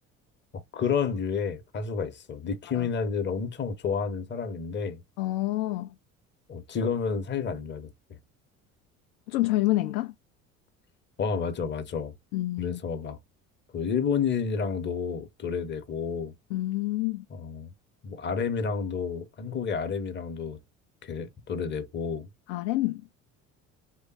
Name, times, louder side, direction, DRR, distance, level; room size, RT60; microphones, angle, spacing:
voice 1, 0.5-5.0 6.5-7.9 11.2-12.1 12.6-13.2 13.7-16.3 17.3-17.7 18.0-20.6 21.0-22.3, left 6 dB, 25° left, 0.8 m, -30 dB
voice 2, 5.2-5.9 9.3-10.1 12.3-12.8 16.5-17.2 22.5-23.0, left 17 dB, 55° left, 0.5 m, -28 dB
3.3 x 2.2 x 4.1 m
figure-of-eight pair, 55°, 41 cm